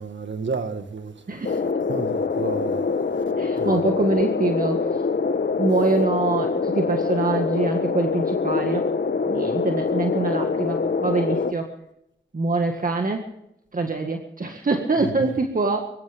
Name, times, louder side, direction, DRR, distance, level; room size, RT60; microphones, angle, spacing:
voice 1, 0.0-1.1 1.9-2.9 3.6-3.9 15.2-15.3, right 4 dB, 75° right, 1.6 m, -31 dB
voice 2, 1.3-1.6 3.4-4.8 5.6-8.9 9.3-11.7 12.3-13.3 13.7-15.9, right 3 dB, 45° right, 1.8 m, -24 dB
sound 1, 1.4-11.5, left 4 dB, 60° left, 1.1 m, -24 dB
24.0 x 15.0 x 3.6 m
wide cardioid pair, 75°, 19 cm